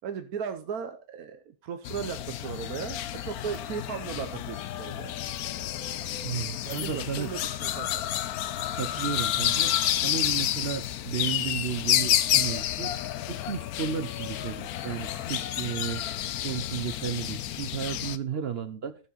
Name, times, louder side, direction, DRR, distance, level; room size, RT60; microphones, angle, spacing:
voice 1, 0.0-5.1 6.6-8.0 18.3-18.5, right 7 dB, 70° right, 8 dB, 1.3 m, -37 dB
sound 1, 1.9-18.2, left 12 dB, 70° left, 1.1 m, -30 dB
voice 2, 6.2-7.3 8.7-9.8 10.0-12.9 13.3-16.0 16.4-19.0, right 8 dB, 50° right, 12 dB, 0.8 m, -33 dB
13.5 x 7.2 x 4.1 m, 0.34 s
omnidirectional pair, 1.7 m